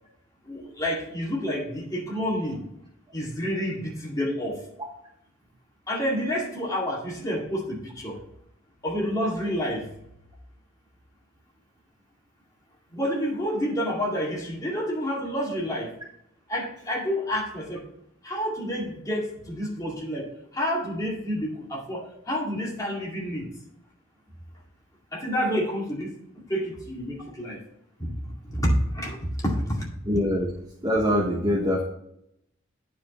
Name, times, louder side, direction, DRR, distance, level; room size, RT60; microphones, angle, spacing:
voice 1, 0.4-2.6 3.1-4.6 5.9-8.2 8.8-9.9 12.9-16.0 16.5-17.9 18.2-23.5 25.1-27.6 28.0-29.9, equal, 15° left, -3 dB, 2.1 m, -29 dB
voice 2, 30.1-30.5 30.8-31.8, equal, 20° right, 0 dB, 0.9 m, -23 dB
9.3 x 5.1 x 4.2 m, 0.77 s
head